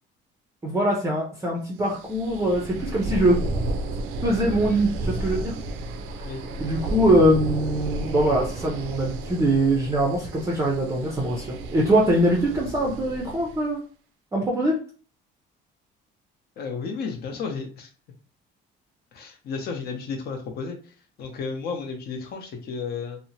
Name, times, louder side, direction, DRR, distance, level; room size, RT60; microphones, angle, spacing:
voice 1, 0.6-3.4 4.2-5.6 6.6-13.8 14.3-14.8, right 1 dB, 15° right, -2 dB, 0.4 m, -22 dB
sound 1, 1.9-13.7, right 2 dB, 80° right, 0.4 m, -32 dB
voice 2, 16.6-17.9 19.1-20.8 21.2-23.2, left 5 dB, 50° left, 4 dB, 0.7 m, -32 dB
2.8 x 2.0 x 2.7 m, 0.39 s
cardioid pair, 145°, 21 cm